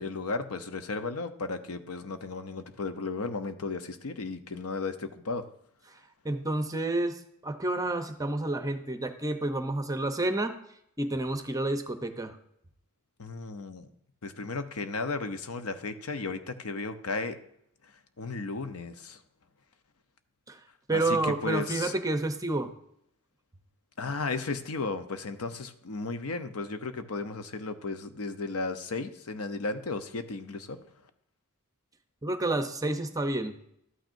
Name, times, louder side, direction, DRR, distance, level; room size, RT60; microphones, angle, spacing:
voice 1, 0.0-5.4 13.2-13.9 14.2-17.4 18.2-19.2 20.9-21.9 24.0-30.8, left 3 dB, 70° left, 9 dB, 0.7 m, -34 dB
voice 2, 6.2-10.6 11.0-12.4 20.5-20.6 20.9-22.7 32.2-33.5, right 2 dB, 15° right, 8 dB, 0.7 m, -29 dB
12.5 x 9.0 x 2.6 m, 0.74 s
head